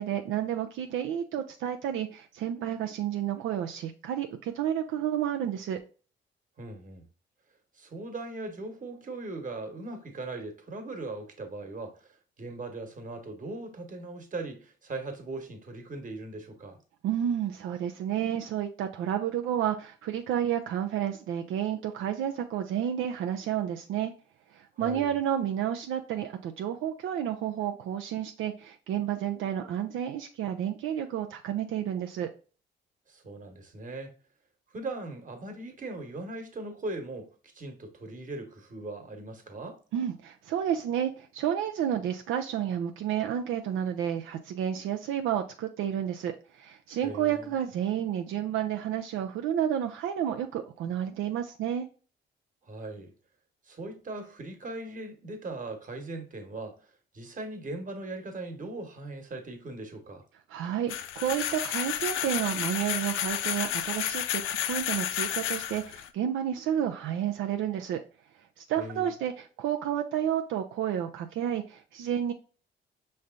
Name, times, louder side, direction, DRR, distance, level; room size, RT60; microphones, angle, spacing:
voice 1, 0.0-5.8 17.0-24.1 24.5-32.3 39.9-51.9 60.5-68.0 68.6-72.3, right 10 dB, 80° right, 0.5 m, -31 dB
voice 2, 6.6-7.0 7.7-16.8 24.8-25.2 33.1-34.1 34.7-39.8 47.0-47.5 52.6-53.1 53.6-56.8 57.1-60.2 68.8-69.1, right 2 dB, 40° right, 1.3 m, -39 dB
sound 1, 60.9-66.1, left 11 dB, 90° left, 0.5 m, -31 dB
5.4 x 3.2 x 2.4 m
cardioid pair, 90°, 20 cm